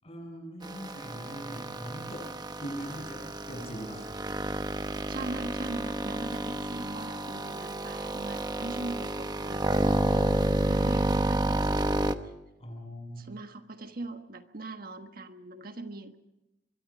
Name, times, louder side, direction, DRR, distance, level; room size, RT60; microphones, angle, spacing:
voice 1, 0.0-4.1 12.6-13.3, equal, 35° left, 2 dB, 7.7 m, -41 dB
sound 1, 0.6-12.2, right 1 dB, 25° right, 1.0 m, -30 dB
voice 2, 5.1-12.3 13.2-16.2, right 2 dB, 55° right, 7 dB, 1.4 m, -41 dB
25.0 x 22.5 x 5.2 m, 0.95 s
head